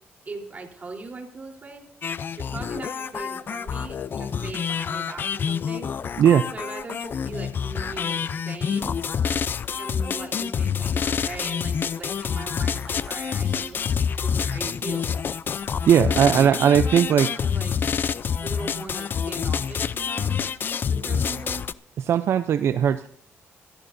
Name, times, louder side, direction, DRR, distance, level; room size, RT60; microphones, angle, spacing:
voice 1, 0.3-1.9 2.3-5.9 6.5-8.9 9.8-13.8 14.2-15.1 16.1-17.7 18.4-20.4 20.9-21.6, right 3 dB, 35° right, 1 dB, 3.7 m, -39 dB
sound 1, 2.0-21.7, left 7 dB, 45° left, 0.5 m, -27 dB
voice 2, 6.2-6.5 15.9-17.3 21.1-21.2 22.0-23.1, right 9 dB, 65° right, 11 dB, 0.5 m, -18 dB
sound 2, 11.0-14.6, left 2 dB, ahead, 4.2 m, -49 dB
26.5 x 14.0 x 2.6 m, 0.63 s
cardioid pair, 90°, 5 cm